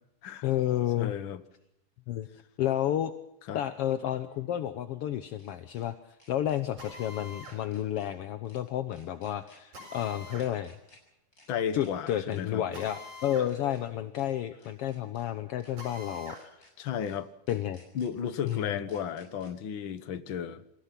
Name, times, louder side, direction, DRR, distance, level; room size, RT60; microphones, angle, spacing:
voice 1, 0.4-1.1 2.1-2.3 2.6-3.1 3.5-5.9 6.3-10.7 11.7-16.7 17.5-17.8 18.4-18.8, left 11 dB, 70° left, 10 dB, 1.4 m, -31 dB
voice 2, 1.0-1.4 3.5-3.6 11.5-12.6 16.8-17.3 17.9-20.6, left 8 dB, 50° left, 11 dB, 1.6 m, -33 dB
sound 1, 1.6-1.7 4.0-5.9 6.2-6.6 7.0-7.1 7.5-8.1 8.5-8.6 8.9-9.6 10.0-10.1 10.4-11.0 11.3-11.5 11.8-12.4 12.7-12.9 13.2-13.8 14.2-14.3 14.6-15.3 15.6-15.7 16.1-16.7 17.0-17.2 17.5-18.1 18.5-18.6 18.9-19.5, left 1 dB, 25° left, 6.8 m, -60 dB
Drill, 6.8-7.6 9.7-10.5 12.7-13.5 13.9-14.0 15.8-16.5, left 1 dB, 70° right, 8.2 m, -45 dB
27.0 x 16.5 x 6.0 m, 0.83 s
omnidirectional pair, 3.6 m